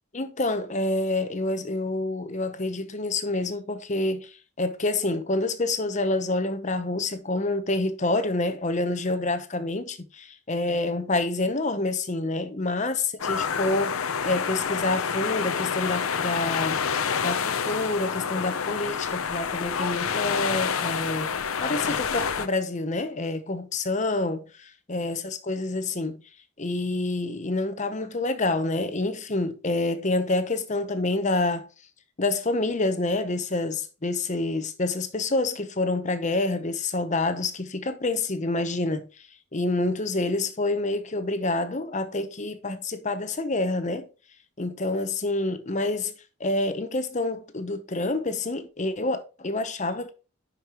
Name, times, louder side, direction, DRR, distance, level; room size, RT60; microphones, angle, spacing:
voice 1, 0.1-21.3 21.6-26.2 26.6-31.7 32.2-39.1 39.5-44.1 44.6-46.1 46.4-50.1, left 2 dB, 35° left, 0.8 m, -27 dB
sound 1, 13.2-22.5, left 6 dB, 90° left, 0.7 m, -28 dB
10.5 x 5.4 x 3.0 m
head